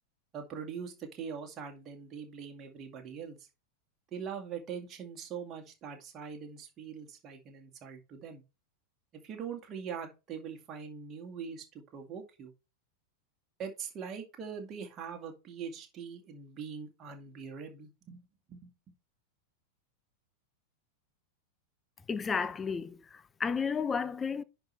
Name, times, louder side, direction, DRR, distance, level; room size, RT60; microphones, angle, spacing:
voice 1, 0.3-3.4 4.1-8.4 9.2-11.7 11.9-12.5 13.6-18.7, right 6 dB, 30° right, 2.2 m, -42 dB
voice 2, 22.1-24.4, left 5 dB, 15° left, 0.6 m, -32 dB
10.5 x 4.7 x 3.4 m
figure-of-eight pair, 90°, 0 cm